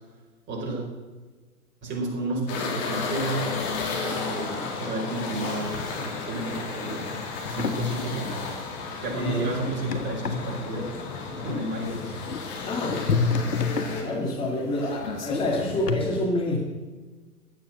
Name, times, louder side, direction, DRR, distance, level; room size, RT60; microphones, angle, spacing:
voice 1, 0.5-0.8 1.8-3.5 4.0-7.1 7.4-8.5 9.0-10.9 11.4-12.1, right 2 dB, 25° right, -2 dB, 4.9 m, -31 dB
sound 1, 2.5-14.0, left 4 dB, 35° left, 3.2 m, -33 dB
sound 2, 7.5-16.0, left 5 dB, 75° left, 1.8 m, -31 dB
voice 2, 9.1-9.5 12.7-13.0 14.0-16.6, left 1 dB, 10° left, -1 dB, 2.1 m, -27 dB
15.0 x 10.0 x 6.5 m, 1.3 s
figure-of-eight pair, 120°, 47 cm